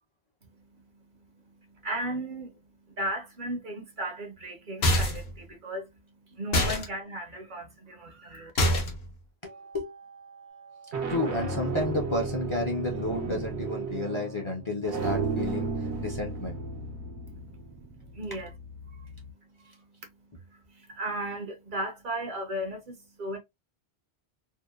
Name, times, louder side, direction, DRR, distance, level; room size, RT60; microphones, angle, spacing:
voice 1, 0.5-8.5 17.3-18.5 18.8-23.4, right 1 dB, 55° right, 0.7 m, -37 dB
sound 1, 4.8-5.3 6.5-6.9 8.6-9.1, left 1 dB, 70° left, 1.0 m, -24 dB
voice 2, 9.4-9.9 11.1-15.7 16.0-16.6, left 2 dB, 35° left, 0.5 m, -31 dB
sound 2, 9.5-9.9 10.7-19.3, right 4 dB, 80° right, 1.0 m, -34 dB
2.8 x 2.1 x 2.2 m
omnidirectional pair, 1.1 m